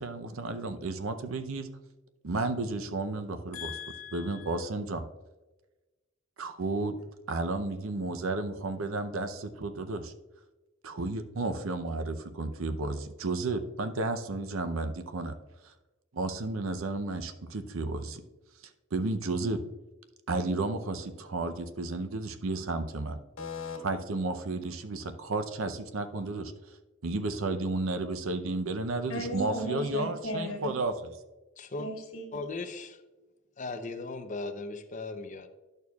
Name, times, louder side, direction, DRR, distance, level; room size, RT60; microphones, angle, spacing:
voice 1, 0.0-1.7 2.2-3.7 4.1-5.0 6.4-6.9 7.3-10.1 10.8-15.3 15.6-15.7 16.1-18.2 18.9-19.6 20.3-23.2 23.8-26.5 27.0-30.9, right 2 dB, 70° right, 9 dB, 0.6 m, -32 dB
voice 2, 3.5-4.6 23.4-23.8 29.1-30.8 31.8-32.3, left 1 dB, 85° left, 0 dB, 1.8 m, -37 dB
voice 3, 31.6-31.9 32.3-33.0 33.6-35.5, left 2 dB, 35° left, 7 dB, 0.6 m, -37 dB
11.0 x 6.6 x 2.3 m, 1.1 s
head